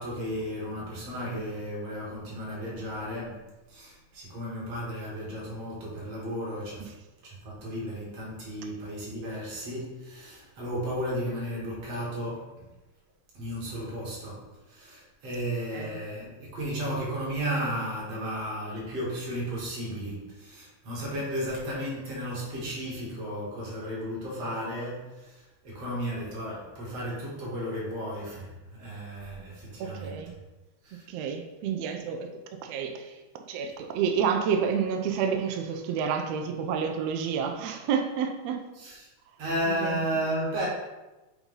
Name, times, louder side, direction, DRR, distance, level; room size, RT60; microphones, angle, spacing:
voice 1, 0.0-6.9 7.2-12.6 13.3-30.3 30.8-31.0 38.8-39.1 39.4-40.7, equal, 60° right, -5 dB, 2.9 m, -34 dB
voice 2, 29.8-30.3 31.1-32.3 32.6-33.2 33.5-38.6 39.7-40.0, right 7 dB, 75° right, 4 dB, 1.6 m, -29 dB
7.1 x 2.7 x 5.4 m, 1.1 s
omnidirectional pair, 3.3 m